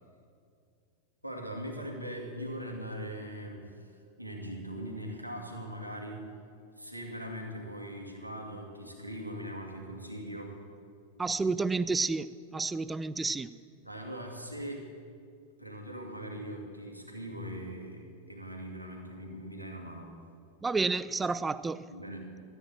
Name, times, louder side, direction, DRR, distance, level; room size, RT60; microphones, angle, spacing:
voice 1, 1.2-6.3 6.8-10.6 13.8-14.9 15.6-20.1 21.9-22.3, equal, 90° right, 2.1 m, -41 dB
voice 2, 11.2-13.5 20.6-21.9, right 4 dB, 10° right, 0.4 m, -30 dB
13.5 x 9.1 x 8.8 m
figure-of-eight pair, 90°, 0 cm